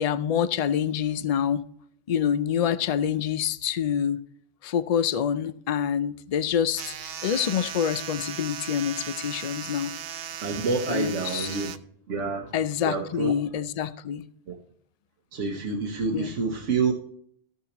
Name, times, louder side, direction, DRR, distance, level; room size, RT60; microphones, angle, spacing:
voice 1, 0.0-1.6 2.1-4.2 4.6-9.9 10.9-11.5 12.5-14.3 16.1-16.4, left 8 dB, 65° left, 0.4 m, -26 dB
sound 1, 6.7-11.8, right 9 dB, 60° right, 0.7 m, -37 dB
voice 2, 10.4-11.7 12.1-12.5 12.8-13.3 14.5-14.6 15.3-16.9, right 4 dB, 80° right, 1.3 m, -28 dB
14.0 x 6.7 x 3.0 m
omnidirectional pair, 1.2 m